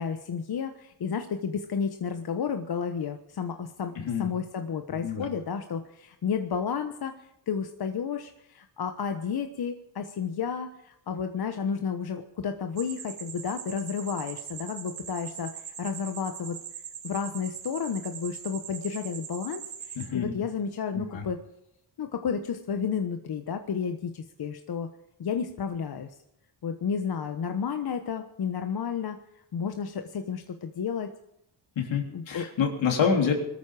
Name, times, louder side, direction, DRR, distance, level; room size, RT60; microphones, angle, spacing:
voice 1, 0.0-16.6 17.0-21.4 22.0-24.9 25.2-26.1 26.6-29.2 29.5-31.1 32.1-32.4, left 6 dB, 55° left, 6 dB, 1.2 m, -32 dB
voice 2, 4.0-4.3 4.9-5.3 20.0-20.3 20.9-21.2 31.8-33.3, left 6 dB, 80° left, 1 dB, 3.6 m, -27 dB
sound 1, 12.8-20.1, right 8 dB, 75° right, 2.2 m, -41 dB
21.0 x 13.5 x 4.9 m, 0.82 s
cardioid pair, 100°, 45 cm